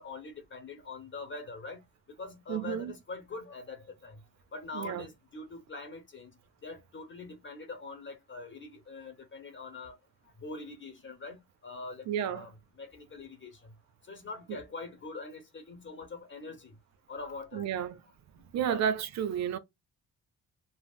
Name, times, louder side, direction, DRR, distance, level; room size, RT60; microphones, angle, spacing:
voice 1, 0.0-10.0 10.2-12.5 12.8-13.8 14.0-16.7 17.1-17.7 18.7-18.8, left 3 dB, 40° left, 0.9 m, -44 dB
voice 2, 2.5-2.9 4.7-5.1 12.1-12.5 14.5-14.6 17.5-18.0 18.3-19.6, right 9 dB, 65° right, 0.5 m, -32 dB
3.5 x 2.0 x 2.4 m
cardioid pair, 90°, 30 cm